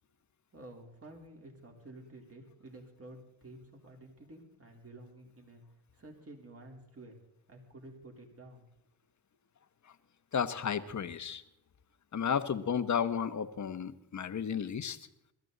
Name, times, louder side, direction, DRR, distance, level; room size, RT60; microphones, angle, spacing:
voice 1, 0.5-5.6 5.9-7.2 7.5-8.7, right 1 dB, 30° right, 1 dB, 3.9 m, -51 dB
voice 2, 10.3-11.4 12.1-15.0, left 7 dB, 35° left, 11 dB, 1.2 m, -33 dB
22.0 x 13.5 x 4.0 m, 0.82 s
supercardioid pair, 75°, 48 cm